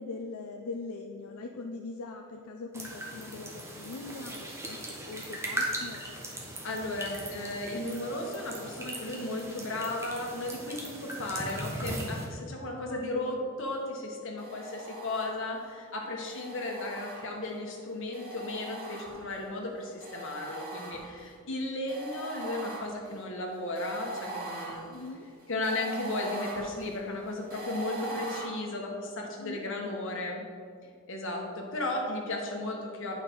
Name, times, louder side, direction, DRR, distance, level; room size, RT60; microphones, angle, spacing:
voice 1, 0.0-4.8 5.0-6.2 12.6-13.5 16.1-16.7 24.9-25.3 29.4-30.0, left 3 dB, 80° left, 4 dB, 0.5 m, -42 dB
sound 1, 2.7-12.2, right 1 dB, 10° right, 1.1 m, -39 dB
voice 2, 6.6-25.0 25.5-30.4 31.1-33.2, left 2 dB, 60° left, 0 dB, 1.4 m, -35 dB
sound 2, 14.4-15.6 16.3-17.6 18.1-19.5 20.0-21.3 21.9-28.4, right 1 dB, 40° right, 2.0 m, -41 dB
8.7 x 5.7 x 4.6 m, 2.2 s
head